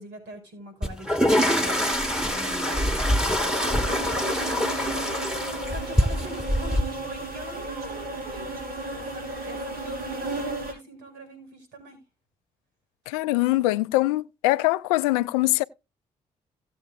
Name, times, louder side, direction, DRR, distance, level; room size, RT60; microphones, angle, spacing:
voice 1, 0.0-1.8 2.2-5.1 5.4-8.5 8.9-12.0, equal, 75° right, 5.3 m, -43 dB
sound 1, 0.8-6.8, equal, 5° right, 2.7 m, -24 dB
sound 2, 1.2-10.7, right 2 dB, 55° right, 4.9 m, -34 dB
voice 2, 13.1-15.6, left 18 dB, 85° left, 0.4 m, -23 dB
17.0 x 7.8 x 2.4 m
hypercardioid pair, 40°, 18 cm